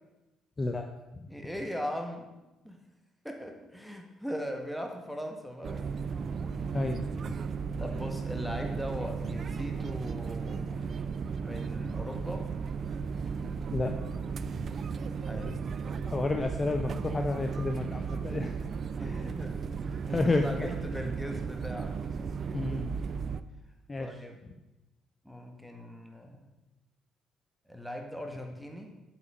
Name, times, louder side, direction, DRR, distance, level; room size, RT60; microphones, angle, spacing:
voice 1, 0.6-0.9 1.1-1.2 6.7-7.0 7.3-7.4 13.7-14.0 14.4-14.7 16.0-18.6 19.0-19.3 20.0-20.5 22.5-22.9 23.9-24.1, left 2 dB, 25° left, 5 dB, 0.6 m, -31 dB
voice 2, 1.3-2.3 2.6-2.8 3.2-6.0 6.3-6.6 7.8-10.8 11.4-12.5 15.2-15.7 19.0-22.0 24.0-24.4 25.2-26.5 27.7-28.9, equal, ahead, 3 dB, 1.6 m, -39 dB
sound 1, 5.6-23.4, right 5 dB, 45° right, 0.4 m, -35 dB
7.8 x 5.9 x 5.6 m, 1.0 s
figure-of-eight pair, 45°, 0 cm